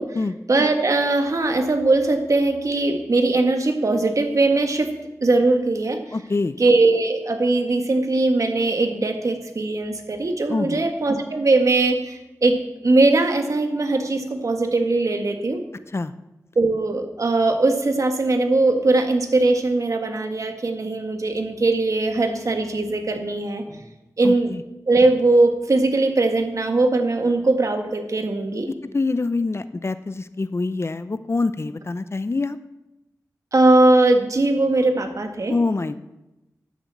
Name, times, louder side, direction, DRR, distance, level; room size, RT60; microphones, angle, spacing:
voice 1, 0.5-4.9 5.2-6.2 6.6-15.6 16.6-23.8 24.2-24.5 24.9-28.7 33.5-35.6, right 2 dB, 60° right, 5 dB, 1.8 m, -20 dB
voice 2, 6.1-6.5 10.5-10.8 15.9-16.1 24.2-24.6 28.7-32.6 35.5-36.0, left 3 dB, 45° left, 13 dB, 0.7 m, -25 dB
12.5 x 7.2 x 8.5 m, 0.97 s
wide cardioid pair, 60°, 6 cm